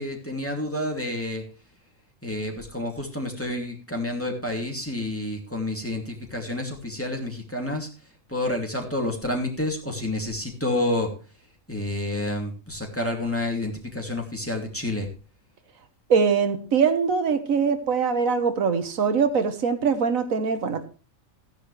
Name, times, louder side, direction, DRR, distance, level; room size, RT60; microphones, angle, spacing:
voice 1, 0.0-1.4 2.2-7.9 8.3-11.1 11.7-15.1, left 1 dB, 10° left, 1 dB, 2.6 m, -29 dB
voice 2, 16.1-20.9, right 6 dB, 85° right, 8 dB, 1.7 m, -22 dB
14.5 x 10.5 x 3.3 m, 0.36 s
omnidirectional pair, 1.4 m